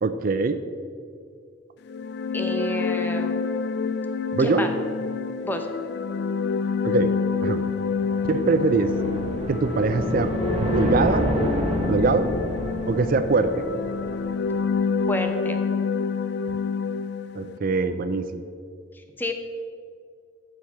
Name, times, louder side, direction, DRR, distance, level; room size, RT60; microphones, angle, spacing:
voice 1, 0.0-0.6 4.3-4.7 6.8-7.1 7.4-7.6 8.3-8.9 9.5-10.3 10.6-11.3 11.9-12.3 12.9-13.6 17.3-18.4, right 4 dB, 50° right, 11 dB, 0.5 m, -22 dB
sound 1, 1.9-17.6, left 5 dB, 60° left, 0.4 m, -27 dB
voice 2, 2.3-3.4 4.4-4.7 5.4-5.7 15.1-15.6 19.2-19.3, left 1 dB, 10° left, 5 dB, 0.8 m, -29 dB
sound 2, 7.2-14.6, right 1 dB, 35° right, 1.0 m, -30 dB
7.7 x 6.7 x 7.1 m, 2.3 s
head